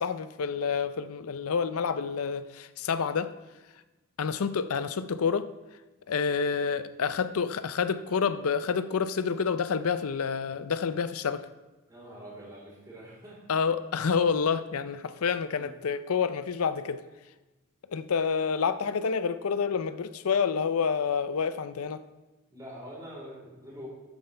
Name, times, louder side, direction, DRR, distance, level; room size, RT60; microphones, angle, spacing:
voice 1, 0.0-3.3 4.2-5.5 6.1-11.5 13.5-17.0 17.9-22.0, left 6 dB, 80° left, 0.5 m, -28 dB
voice 2, 11.9-13.4 15.5-15.7 22.5-23.9, equal, 15° right, 4.0 m, -45 dB
12.5 x 9.0 x 3.4 m
head